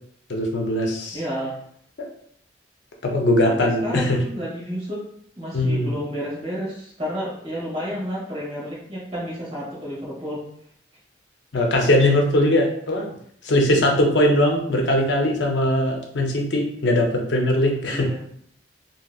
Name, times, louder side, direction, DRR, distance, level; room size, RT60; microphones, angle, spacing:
voice 1, 0.3-1.2 2.0-2.1 3.0-4.2 5.5-5.9 11.5-13.1 13.4-18.1, left 1 dB, 70° left, 1 dB, 0.6 m, -20 dB
voice 2, 1.1-1.6 3.4-5.0 5.3-10.4 17.8-18.2, equal, 35° right, -6 dB, 1.4 m, -31 dB
2.8 x 2.8 x 2.3 m, 0.67 s
head